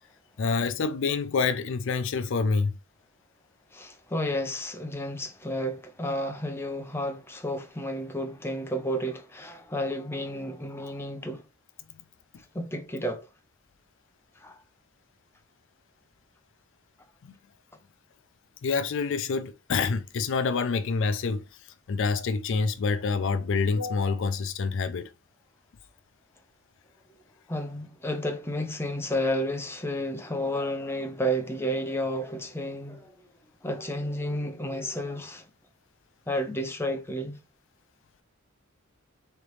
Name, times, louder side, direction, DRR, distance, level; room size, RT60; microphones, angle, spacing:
voice 1, 0.4-2.7 17.2-17.4 18.6-25.1, left 4 dB, 60° left, 0.4 m, -27 dB
voice 2, 3.7-11.4 12.5-13.2 14.4-14.6 27.5-33.1 33.6-35.5 36.3-37.4, equal, 10° left, 0.6 m, -31 dB
3.9 x 3.3 x 3.1 m
head